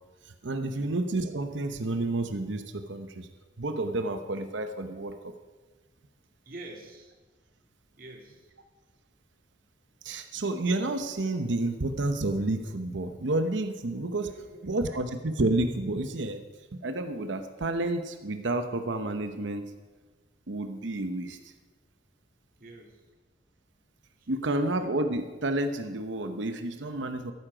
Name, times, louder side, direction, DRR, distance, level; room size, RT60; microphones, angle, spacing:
voice 1, 0.3-3.3 3.6-5.3 10.0-14.3 14.6-16.4 16.7-19.7 20.5-21.4 24.3-27.3, right 2 dB, 80° right, 7 dB, 0.9 m, -30 dB
voice 2, 6.4-7.1 8.0-8.5 14.2-14.8 22.6-23.0 24.2-24.4, right 2 dB, 50° right, 1 dB, 2.3 m, -47 dB
14.0 x 12.5 x 5.0 m, 1.3 s
head